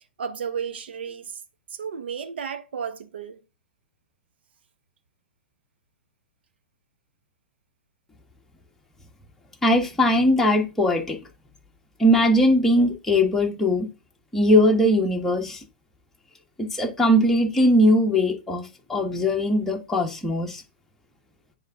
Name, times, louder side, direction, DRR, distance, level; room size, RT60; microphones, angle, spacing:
voice 1, 0.2-1.4 1.7-3.4, right 7 dB, 75° right, 0.9 m, -33 dB
voice 2, 9.6-11.2 12.0-13.9 14.3-15.6 16.6-20.6, left 1 dB, 5° left, 1.5 m, -20 dB
9.4 x 3.6 x 3.7 m
hypercardioid pair, 115°, 6 cm